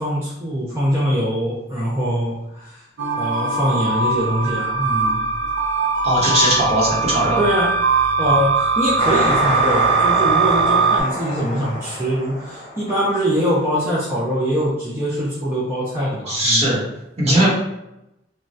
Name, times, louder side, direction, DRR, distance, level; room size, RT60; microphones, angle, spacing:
voice 1, 0.0-2.8 3.2-5.2 7.4-7.7 8.2-16.7 17.3-17.5, equal, 15° right, -8 dB, 0.5 m, -23 dB
sound 1, 3.0-11.0, right 4 dB, 65° right, 0.5 m, -20 dB
voice 2, 6.0-7.4 16.3-16.8 17.2-17.5, right 1 dB, 35° right, -6 dB, 0.9 m, -18 dB
sound 2, 9.0-13.3, equal, 30° left, 0.7 m, -25 dB
3.0 x 2.2 x 2.6 m, 0.88 s
head